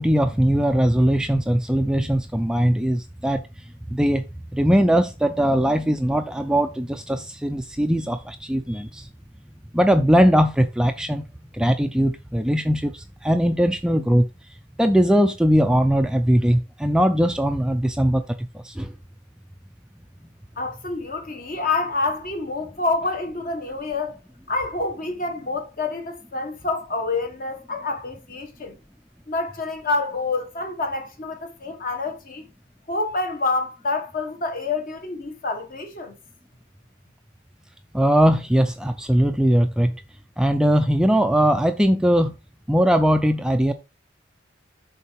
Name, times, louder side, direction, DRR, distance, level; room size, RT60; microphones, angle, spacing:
voice 1, 0.0-3.4 3.9-9.1 9.7-11.2 11.5-14.3 14.8-18.2 18.5-18.9 37.9-40.0 40.4-42.3 42.7-43.7, equal, 5° right, 0.4 m, -20 dB
voice 2, 20.6-24.2 24.5-28.8 29.3-32.4 32.9-36.2, left 3 dB, 45° left, 1.3 m, -27 dB
6.7 x 4.6 x 4.5 m
head